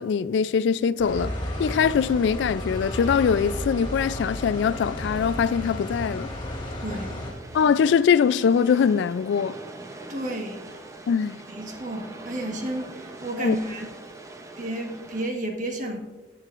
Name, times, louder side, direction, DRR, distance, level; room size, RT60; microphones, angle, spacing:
voice 1, 0.0-1.3 1.6-6.3 7.5-9.6 11.1-11.4 13.4-13.6, left 6 dB, 75° left, 0.3 m, -22 dB
sound 1, 1.0-7.3, left 1 dB, 25° left, 2.6 m, -33 dB
sound 2, 6.5-15.3, right 2 dB, 15° right, 0.6 m, -43 dB
voice 2, 6.8-7.1 10.1-10.8 11.4-13.9 14.6-16.0, right 1 dB, 45° right, 1.4 m, -32 dB
14.0 x 9.1 x 2.5 m
head